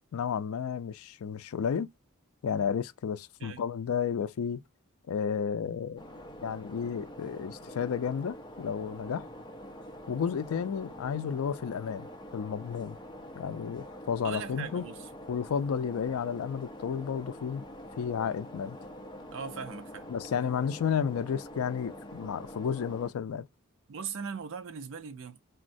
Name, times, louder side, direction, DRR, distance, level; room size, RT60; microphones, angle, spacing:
voice 1, 0.1-1.9 2.4-4.6 5.1-6.0 6.4-9.3 10.1-13.0 13.3-14.8 15.3-17.6 18.0-18.8 20.1-23.5, left 7 dB, 90° left, 0.4 m, -32 dB
sound 1, 6.0-23.1, equal, 20° left, 0.5 m, -45 dB
voice 2, 14.2-15.1 19.3-20.1 23.9-25.4, right 6 dB, 65° right, 0.5 m, -39 dB
3.7 x 2.0 x 2.6 m
head